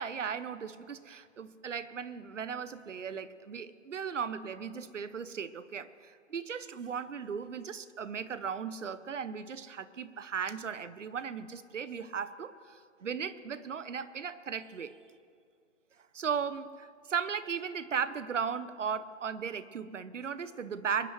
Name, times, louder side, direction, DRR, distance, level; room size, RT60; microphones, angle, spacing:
voice 1, 0.0-15.0 16.1-21.1, right 6 dB, 75° right, 15 dB, 0.8 m, -37 dB
23.0 x 11.5 x 3.2 m, 2.2 s
figure-of-eight pair, 145°, 37 cm